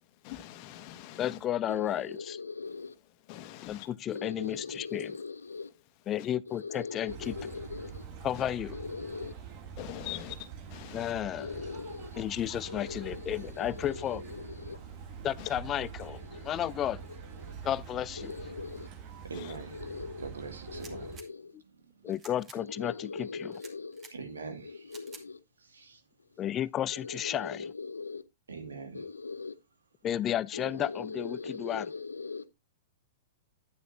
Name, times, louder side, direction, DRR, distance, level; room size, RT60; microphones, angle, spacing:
voice 1, 0.2-1.4 3.3-3.9 6.2-6.3 8.3-8.4 9.8-11.2 15.4-15.5 19.3-19.6, left 14 dB, 45° left, 1.4 m, -43 dB
voice 2, 1.2-2.4 3.7-5.1 6.1-7.3 8.2-8.8 10.9-11.5 12.2-14.2 15.2-17.0 17.6-18.3 22.0-23.5 26.4-27.6 30.0-31.9, left 11 dB, 30° left, 0.4 m, -33 dB
voice 3, 1.7-3.0 4.1-5.7 6.5-8.1 8.7-9.3 11.4-12.2 12.7-14.8 16.0-17.6 18.1-18.9 19.7-20.3 20.7-21.6 22.5-24.1 24.6-25.4 26.2-26.3 26.9-28.2 28.9-29.5 30.5-32.4, left 4 dB, 90° left, 0.7 m, -41 dB
sound 1, 7.1-21.2, right 7 dB, 45° right, 1.6 m, -45 dB
voice 4, 19.2-19.8 20.2-21.1 21.8-22.1 24.1-24.9 25.6-26.0 28.5-29.0, right 4 dB, 85° right, 2.1 m, -43 dB
sound 2, 20.7-21.3 22.1-22.6 23.5-24.1 24.9-25.2, right 3 dB, 20° right, 2.2 m, -51 dB
9.5 x 9.4 x 2.7 m
hypercardioid pair, 110°, 0 cm